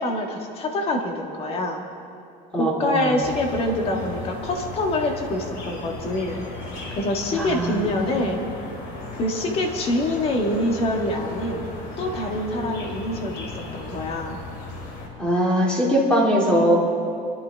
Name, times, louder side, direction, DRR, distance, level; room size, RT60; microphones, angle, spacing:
voice 1, 0.0-1.8 2.5-6.4 6.9-8.5 9.1-11.6 12.0-14.4, left 1 dB, 35° left, 2 dB, 1.7 m, -25 dB
voice 2, 2.5-3.1 7.3-7.9 15.2-16.8, equal, 5° left, -3 dB, 2.4 m, -21 dB
sound 1, 3.2-15.1, left 2 dB, 60° left, 3.0 m, -36 dB
24.5 x 12.0 x 3.5 m, 2.6 s
cardioid pair, 165°, 17 cm